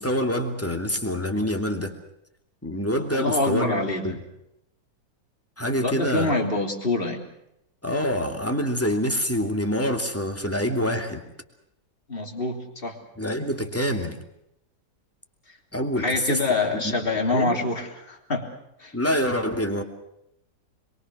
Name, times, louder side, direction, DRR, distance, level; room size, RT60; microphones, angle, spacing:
voice 1, 0.0-1.9 2.6-4.2 5.6-6.3 7.8-11.2 13.2-14.2 15.7-16.4 16.7-16.9 17.3-17.6 18.9-19.8, equal, 10° left, 4 dB, 2.7 m, -26 dB
voice 2, 3.1-4.2 5.8-7.2 12.1-13.0 16.0-18.5 18.8-18.9, left 2 dB, 30° left, 3 dB, 3.6 m, -25 dB
27.0 x 23.0 x 6.3 m, 0.82 s
omnidirectional pair, 1.9 m